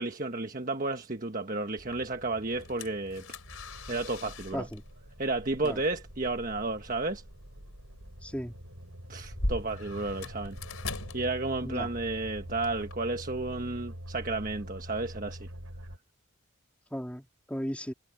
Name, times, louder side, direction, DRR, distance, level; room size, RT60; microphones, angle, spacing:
voice 1, 0.0-3.3 3.9-4.7 5.2-7.2 9.1-10.6 11.1-15.5, right 2 dB, 40° right, 1.4 m, -32 dB
sound 1, 1.8-12.9, left 2 dB, 90° left, 4.5 m, -42 dB
sound 2, 3.4-16.0, equal, 75° right, 7.9 m, -45 dB
voice 2, 8.2-8.5 11.6-11.9 16.9-17.9, equal, 5° left, 4.0 m, -36 dB
head